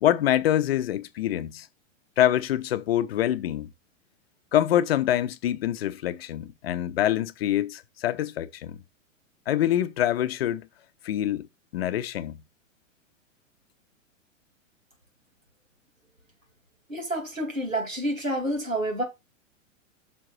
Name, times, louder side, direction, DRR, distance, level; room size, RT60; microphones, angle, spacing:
voice 1, 0.0-1.7 2.2-3.7 4.5-8.8 9.5-10.7 11.0-11.5 11.7-12.4, left 12 dB, 50° left, 0.8 m, -25 dB
voice 2, 16.9-19.0, right 1 dB, 85° right, 2.9 m, -28 dB
6.0 x 4.7 x 6.0 m
figure-of-eight pair, 105°, 39 cm